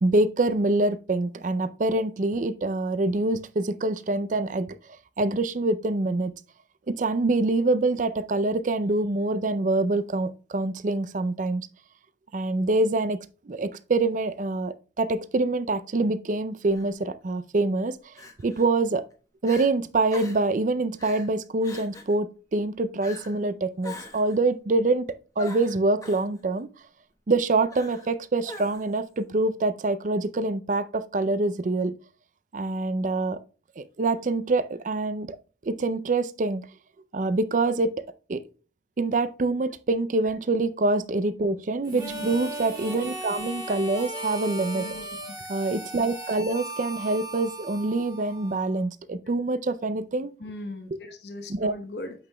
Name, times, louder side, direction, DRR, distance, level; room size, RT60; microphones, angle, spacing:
voice 1, 0.0-4.8 5.2-6.3 6.9-11.7 12.3-13.2 13.5-18.1 18.4-19.0 19.4-25.1 25.4-26.7 27.3-32.0 32.5-33.4 33.8-35.4 35.6-36.7 37.1-38.0 38.3-38.4 39.0-44.9 45.5-50.3 51.5-51.7, right 2 dB, 45° right, 0.4 m, -25 dB
Crying sobbing, 16.6-16.9 18.2-18.7 19.1-19.2 19.4-19.7 20.1-20.5 21.0-21.3 21.6-22.2 23.0-23.4 23.8-24.4 25.4-26.3 27.7-28.1 28.5-29.0, left 2 dB, 20° left, 0.9 m, -42 dB
Harmonica, 41.8-48.8, right 1 dB, 20° right, 1.4 m, -37 dB
voice 2, 41.9-42.3 43.7-43.8 44.7-45.4 50.4-52.1, left 2 dB, 65° left, 0.9 m, -39 dB
8.6 x 6.0 x 2.2 m
head